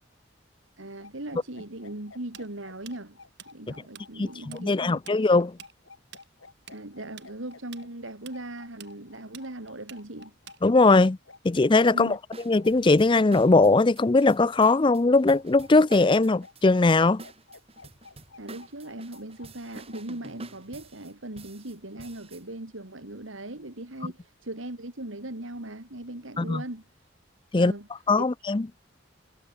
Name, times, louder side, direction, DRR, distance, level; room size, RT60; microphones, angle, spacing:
voice 1, 0.8-3.2 3.5-5.0 6.7-10.3 11.9-12.2 18.4-26.9 27.5-27.9 28.2-28.3, right 1 dB, 75° right, 2.8 m, -39 dB
sound 1, 1.0-20.2, left 4 dB, 90° left, 4.0 m, -52 dB
Tools, 2.3-4.1 4.3-4.6 4.9-11.0, right 10 dB, 60° right, 7.8 m, -48 dB
voice 2, 4.2-5.6 10.6-11.2 11.4-12.2 12.4-17.2 26.4-26.6 27.5-27.7 28.1-28.7, left 3 dB, 25° left, 0.5 m, -20 dB
sound 2, 12.3-22.4, right 2 dB, 30° right, 5.1 m, -47 dB
head